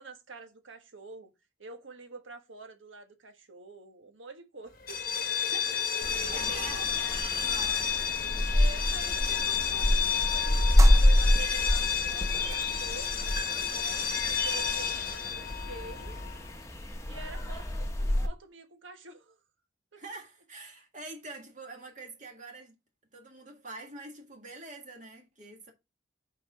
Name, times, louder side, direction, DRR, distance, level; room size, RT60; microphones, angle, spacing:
voice 1, 0.0-1.3 1.6-5.1 6.0-6.9 8.5-13.1 13.4-16.2 17.0-19.4 19.9-20.0, right 3 dB, 85° right, 1.4 m, -47 dB
sound 1, 4.8-16.5, left 8 dB, 45° left, 1.0 m, -31 dB
voice 2, 5.5-6.9 7.4-7.9 19.9-22.7 23.1-25.7, right 3 dB, 40° right, 1.8 m, -45 dB
sound 2, 6.0-18.3, left 1 dB, 15° left, 0.9 m, -28 dB
sound 3, 10.8-11.8 12.3-12.8 13.1-15.9, right 4 dB, 15° right, 0.5 m, -42 dB
7.0 x 4.6 x 4.8 m
head